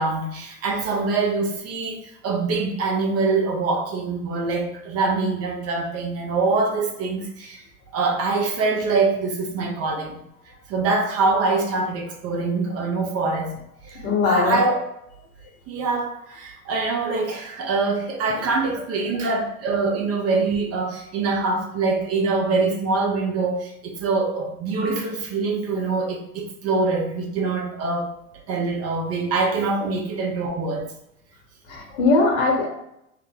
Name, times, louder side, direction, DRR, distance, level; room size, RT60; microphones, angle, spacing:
voice 1, 0.0-7.6 7.9-10.2 10.7-13.5 13.9-14.8 15.7-28.1 28.5-30.8, right 3 dB, 35° right, 2 dB, 0.7 m, -24 dB
voice 2, 13.9-14.6 18.4-18.5 29.8-29.9 31.6-32.7, left 3 dB, 65° left, 0 dB, 1.3 m, -21 dB
3.3 x 2.1 x 3.7 m, 0.81 s
hypercardioid pair, 90°, 44 cm